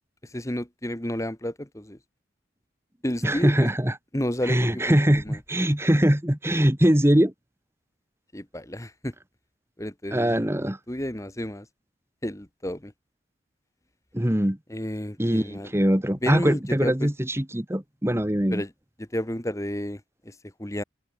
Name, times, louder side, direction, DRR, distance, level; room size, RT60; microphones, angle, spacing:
voice 1, 0.2-2.0 3.0-3.7 4.1-5.4 8.3-9.1 9.8-10.5 10.9-11.7 12.2-12.9 14.7-15.8 16.2-17.1 18.5-18.7 19.0-20.8, left 1 dB, 15° left, 1.5 m, -31 dB
voice 2, 3.2-3.9 4.5-7.3 10.1-10.8 14.1-14.6 15.2-18.6, equal, 15° right, 1.4 m, -22 dB
head